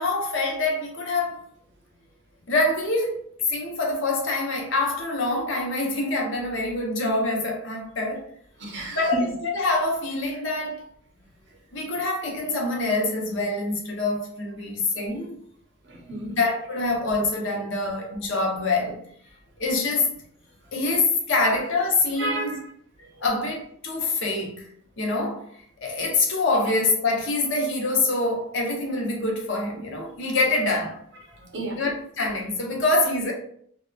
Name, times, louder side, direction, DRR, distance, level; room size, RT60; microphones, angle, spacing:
voice 1, 0.0-1.5 2.5-8.3 8.9-10.9 11.7-15.4 16.2-19.1 19.6-20.1 20.7-22.6 23.2-24.7 25.0-25.5 25.8-31.0 31.8-33.3, left 2 dB, 60° left, 0.6 m, -25 dB
voice 2, 8.6-9.2 15.8-16.4 22.2-22.6 23.0-23.2 31.3-31.8, right 2 dB, 55° right, 0.6 m, -32 dB
2.8 x 2.0 x 2.2 m
head